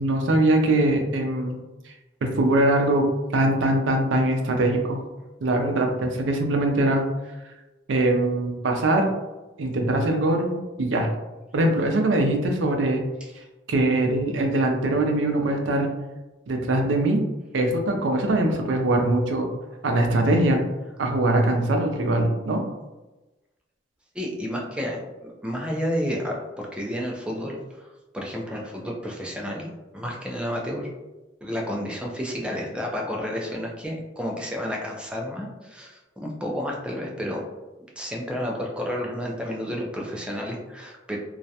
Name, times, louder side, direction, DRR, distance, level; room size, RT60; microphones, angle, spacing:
voice 1, 0.0-1.6 2.2-3.1 3.3-5.0 5.4-7.1 7.9-9.1 9.6-11.1 11.5-13.0 13.7-15.9 16.5-17.2 17.5-19.5 19.8-20.6 21.0-22.6, right 1 dB, 85° right, 3 dB, 0.4 m, -22 dB
voice 2, 24.1-25.0 25.4-27.9 28.1-29.7 29.9-30.9 31.4-37.4 38.0-41.2, equal, 5° right, -1 dB, 0.3 m, -31 dB
2.3 x 2.1 x 2.7 m, 1.1 s
head